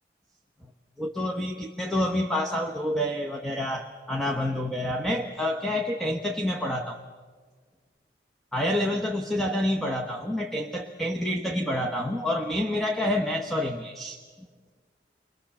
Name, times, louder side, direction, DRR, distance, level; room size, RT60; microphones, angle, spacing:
voice 1, 1.0-7.0 8.5-14.2, left 1 dB, ahead, 1 dB, 1.1 m, -28 dB
30.0 x 22.0 x 7.1 m, 1.5 s
head